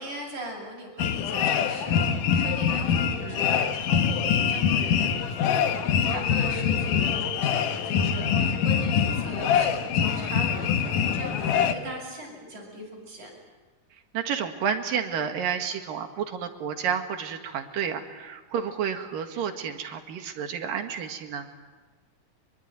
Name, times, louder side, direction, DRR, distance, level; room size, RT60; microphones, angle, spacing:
voice 1, 0.0-13.3, equal, 60° right, 0 dB, 8.7 m, -39 dB
sound 1, 1.0-11.7, left 7 dB, 70° left, 2.7 m, -24 dB
voice 2, 9.2-9.7 14.1-21.5, right 7 dB, 80° right, 5 dB, 3.5 m, -31 dB
24.0 x 22.5 x 9.3 m, 1.3 s
omnidirectional pair, 3.9 m